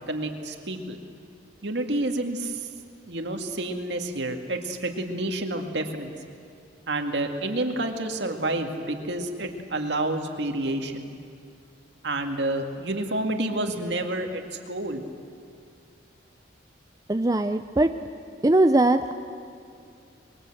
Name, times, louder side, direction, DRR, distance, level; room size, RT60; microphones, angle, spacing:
voice 1, 0.1-1.0 1.6-2.6 3.1-6.1 6.9-11.1 12.0-15.1, right 1 dB, 70° right, 4 dB, 2.1 m, -29 dB
voice 2, 17.1-17.9 18.4-19.1, right 2 dB, 20° right, 7 dB, 0.5 m, -20 dB
25.0 x 21.5 x 7.9 m, 2.4 s
head